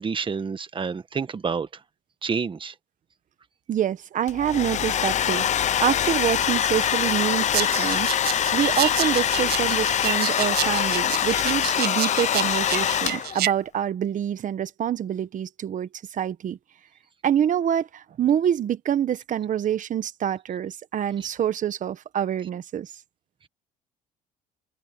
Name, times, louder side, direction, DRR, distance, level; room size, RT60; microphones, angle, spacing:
voice 1, 0.0-1.7 2.2-2.7, right 5 dB, 30° right, 1.5 m, -28 dB
voice 2, 3.7-16.6 17.2-22.9, right 9 dB, 50° right, 1.3 m, -26 dB
Domestic sounds home sounds, 4.3-13.5, left 9 dB, 45° left, 0.7 m, -24 dB
sound 1, 7.5-13.5, right 14 dB, 75° right, 6.2 m, -30 dB
open air
cardioid pair, 110°, 17 cm